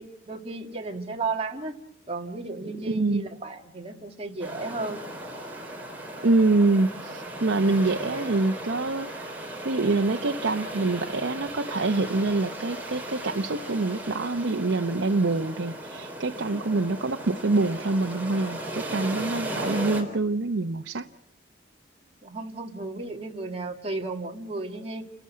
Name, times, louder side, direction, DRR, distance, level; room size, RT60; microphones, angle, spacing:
voice 1, 0.0-1.8 2.1-5.1 22.2-25.0, right 3 dB, 30° right, 2 dB, 2.1 m, -34 dB
voice 2, 2.9-3.3 6.2-9.3 9.6-21.1, right 3 dB, 85° right, 5 dB, 0.8 m, -25 dB
sound 1, 4.4-20.0, right 1 dB, 10° right, 4.1 m, -36 dB
29.5 x 14.0 x 9.7 m, 0.77 s
head